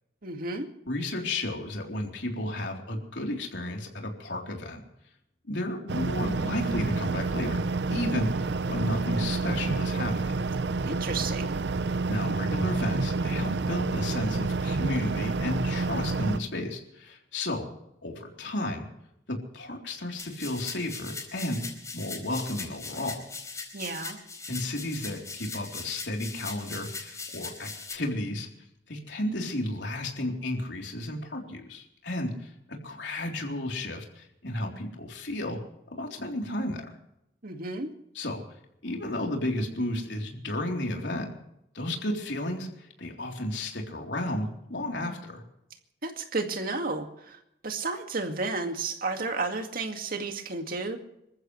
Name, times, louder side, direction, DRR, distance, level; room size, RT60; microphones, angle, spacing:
voice 1, 0.2-0.7 10.8-11.5 23.7-24.2 37.4-37.9 46.0-51.0, right 3 dB, 55° right, 5 dB, 2.1 m, -32 dB
voice 2, 0.9-4.8 5.5-7.6 7.9-10.4 12.1-17.7 18.0-18.9 19.3-21.6 21.9-23.3 24.5-28.5 28.9-35.6 36.0-37.0 38.1-38.4 38.8-41.3 41.7-45.4, left 1 dB, 80° left, 1 dB, 3.7 m, -33 dB
sound 1, 5.9-16.4, right 3 dB, 70° right, 0.7 m, -29 dB
sound 2, 20.2-27.9, left 4 dB, 20° left, 4.4 m, -40 dB
26.5 x 14.5 x 3.3 m, 0.80 s
head